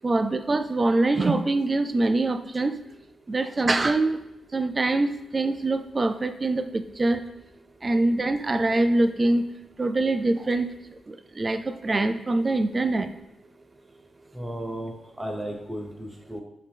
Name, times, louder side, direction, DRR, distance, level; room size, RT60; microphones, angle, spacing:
voice 1, 0.0-2.8 3.3-4.2 4.5-7.2 7.8-9.5 9.8-10.7 11.1-13.1, right 2 dB, 35° right, 10 dB, 0.3 m, -24 dB
voice 2, 14.3-16.4, equal, 15° right, 0 dB, 0.8 m, -34 dB
5.0 x 2.8 x 3.5 m, 0.90 s
cardioid pair, 65°, 0 cm